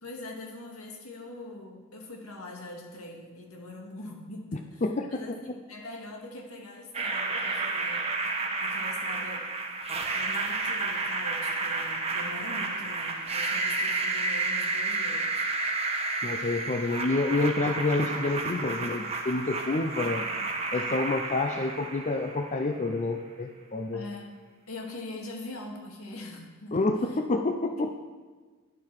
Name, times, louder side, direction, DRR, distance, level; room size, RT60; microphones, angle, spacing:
voice 1, 0.0-8.2 8.6-9.5 10.1-15.4 20.0-20.5 23.9-27.2, left 2 dB, 80° left, 1 dB, 2.2 m, -43 dB
voice 2, 4.8-5.4 16.2-20.2 20.7-24.0 26.7-27.9, left 2 dB, 35° left, 5 dB, 0.6 m, -28 dB
sound 1, 6.9-22.9, right 3 dB, 30° right, 1.3 m, -31 dB
12.0 x 11.0 x 4.7 m, 1.4 s
head